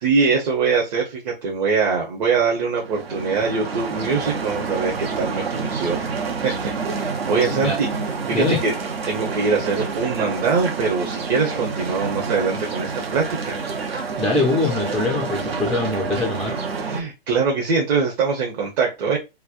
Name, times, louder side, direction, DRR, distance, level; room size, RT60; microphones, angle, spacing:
voice 1, 0.0-6.1 6.4-6.7 7.3-7.9 8.3-8.7 9.1-13.6 16.8-19.2, right 5 dB, 45° right, 0.9 m, -22 dB
sound 1, 2.8-17.0, right 5 dB, 80° right, 0.9 m, -28 dB
voice 2, 7.4-7.8 8.3-8.6 14.2-16.6, left 2 dB, ahead, 0.3 m, -23 dB
3.2 x 2.1 x 2.4 m
figure-of-eight pair, 115°, 30 cm